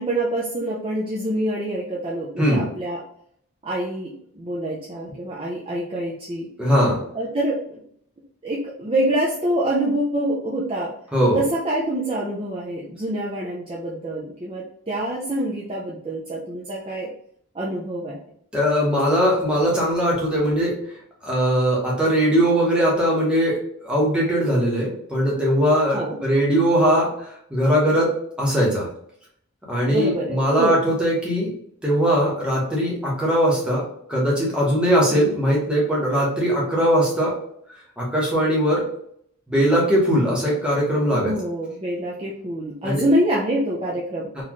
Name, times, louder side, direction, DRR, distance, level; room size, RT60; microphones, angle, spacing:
voice 1, 0.0-3.0 3.6-6.5 7.1-7.8 8.4-10.9 11.3-17.1 17.5-18.2 25.9-26.2 29.9-30.8 35.1-35.2 41.1-44.3, right 1 dB, 25° right, -5 dB, 0.5 m, -26 dB
voice 2, 6.6-7.0 11.1-11.4 18.5-20.7 21.2-28.1 28.4-28.9 29.7-31.5 31.8-33.8 34.1-37.3 38.0-38.8 39.5-41.3 42.8-43.0, equal, 5° right, -5 dB, 1.1 m, -20 dB
4.1 x 2.5 x 3.0 m, 0.66 s
head